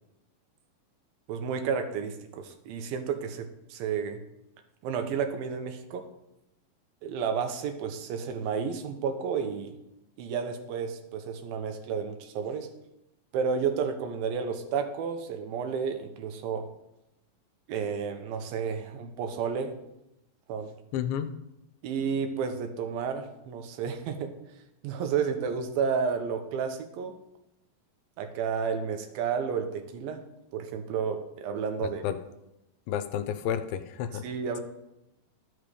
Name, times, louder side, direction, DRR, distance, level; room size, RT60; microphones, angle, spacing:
voice 1, 1.3-4.2 4.8-6.0 7.0-9.8 10.2-12.7 13.3-16.7 17.7-19.7 20.5-20.7 21.8-24.3 24.8-27.2 28.2-30.2 30.5-32.0 34.1-34.6, right 6 dB, 85° right, 6 dB, 2.5 m, -31 dB
voice 2, 20.9-21.3 32.0-32.2 32.9-34.2, left 9 dB, 80° left, 11 dB, 2.2 m, -30 dB
12.5 x 6.1 x 3.3 m, 0.89 s
omnidirectional pair, 4.2 m